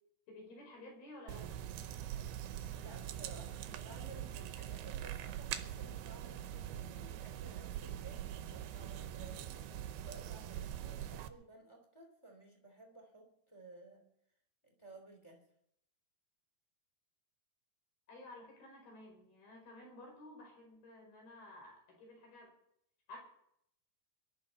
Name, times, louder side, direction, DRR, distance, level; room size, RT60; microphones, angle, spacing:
voice 1, 0.3-1.6 18.1-22.5 23.1-23.2, left 1 dB, 65° left, 0 dB, 7.2 m, -53 dB
sound 1, 1.3-11.3, right 11 dB, 80° right, 2.8 m, -43 dB
voice 2, 2.8-9.4 10.0-14.1 14.6-15.5, right 2 dB, 10° left, 2 dB, 2.2 m, -56 dB
23.5 x 12.0 x 4.2 m, 0.76 s
omnidirectional pair, 4.7 m